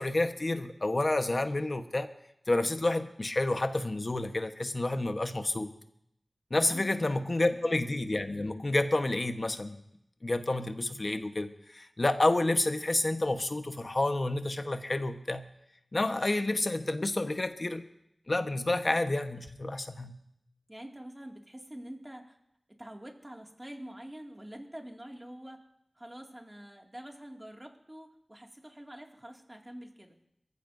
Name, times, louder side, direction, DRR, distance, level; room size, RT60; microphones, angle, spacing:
voice 1, 0.0-2.1 2.5-5.7 6.5-9.8 10.2-15.5 15.9-17.8 18.3-20.2, left 2 dB, 50° left, 7 dB, 1.1 m, -29 dB
voice 2, 6.6-7.0 7.4-7.5 20.7-22.4 22.7-25.6 26.0-30.2, right 1 dB, 20° right, 1 dB, 2.2 m, -46 dB
23.0 x 15.0 x 2.7 m, 0.78 s
wide cardioid pair, 45°, 0 cm